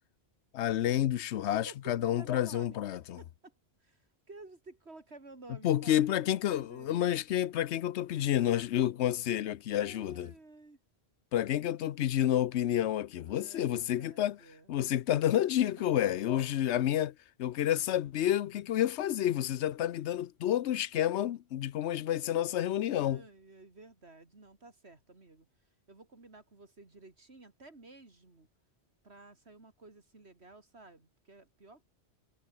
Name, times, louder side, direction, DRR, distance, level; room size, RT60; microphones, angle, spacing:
voice 1, 0.5-3.2 5.6-10.3 11.3-14.4 14.7-17.1 17.4-23.2, left 11 dB, 85° left, 1.0 m, -29 dB
voice 2, 1.4-3.5 3.8-7.1 9.7-10.8 13.2-14.7 15.8-16.1 22.9-25.5 25.9-28.5 29.0-31.8, right 2 dB, 75° right, 3.5 m, -53 dB
omnidirectional pair, 1.1 m